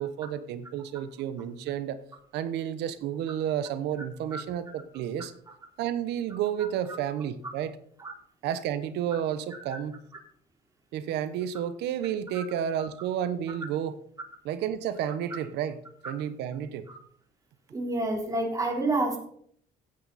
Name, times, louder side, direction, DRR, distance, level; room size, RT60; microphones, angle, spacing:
voice 1, 0.0-2.0 2.3-5.3 5.8-7.8 8.4-9.9 10.9-14.0 14.4-16.9, right 10 dB, 85° right, 12 dB, 1.2 m, -31 dB
voice 2, 17.7-19.2, right 2 dB, 20° right, 0 dB, 4.2 m, -28 dB
16.0 x 8.7 x 4.3 m, 0.64 s
cardioid pair, 110°, 17 cm